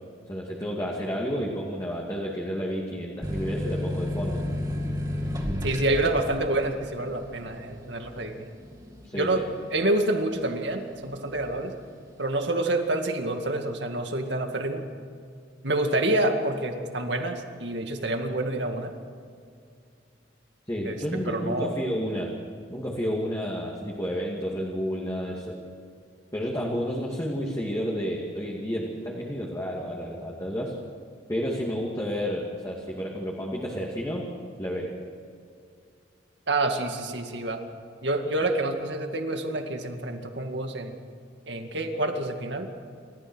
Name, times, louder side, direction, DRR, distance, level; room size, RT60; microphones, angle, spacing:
voice 1, 0.3-4.4 9.0-9.4 20.7-22.3 22.7-25.6 26.3-30.7 31.3-34.2 34.6-34.9 38.4-38.5, equal, 15° left, -3 dB, 2.4 m, -31 dB
sound 1, 3.2-10.5 10.9-11.6, left 1 dB, 20° right, 2.5 m, -32 dB
voice 2, 5.6-8.5 9.1-9.4 9.7-11.7 12.2-14.8 15.6-18.9 20.8-21.0 21.3-21.7 36.5-37.6 38.0-41.0 41.5-42.7, right 2 dB, 65° right, 5 dB, 2.2 m, -27 dB
28.5 x 14.5 x 6.4 m, 2.3 s
head